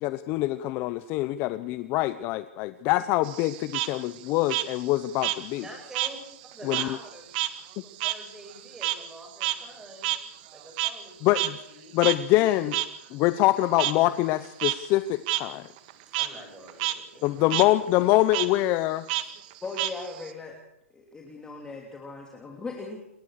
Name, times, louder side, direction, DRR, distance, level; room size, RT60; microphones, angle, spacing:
voice 1, 0.0-5.6 6.6-6.9 11.2-11.6 11.9-12.8 13.1-15.6 17.2-19.0, left 16 dB, 30° left, 14 dB, 0.8 m, -24 dB
Frog, 3.2-6.2 6.5-11.1 11.3-11.5 12.0-12.2 12.7-12.9 13.8-13.9 14.4-14.8 15.3-15.4 15.8-16.3 16.7-16.9 17.2-17.7 18.3-18.5 19.1-20.3, right 16 dB, 40° right, 1.8 m, -29 dB
voice 2, 5.5-6.2 6.5-7.3 7.8-10.1 10.5-11.4 11.7-11.9 16.1-17.6, right 1 dB, 5° right, 2 dB, 7.8 m, -45 dB
voice 3, 19.6-20.6 20.9-23.0, left 3 dB, 10° left, 1 dB, 3.0 m, -38 dB
29.0 x 14.0 x 6.5 m, 0.84 s
hypercardioid pair, 150°, 7 cm